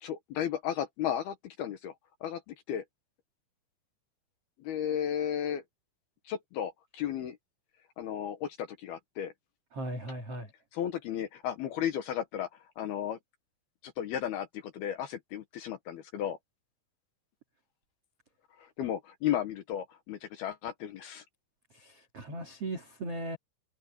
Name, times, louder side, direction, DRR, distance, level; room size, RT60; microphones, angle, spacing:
voice 1, 0.0-1.9 2.2-2.8 4.6-5.6 6.3-7.4 8.0-9.3 10.7-13.2 13.8-16.4 18.6-21.2, left 10 dB, 70° left, 2.6 m, -34 dB
voice 2, 9.7-10.5 21.7-23.4, right 1 dB, 40° right, 2.4 m, -38 dB
omnidirectional pair, 5.8 m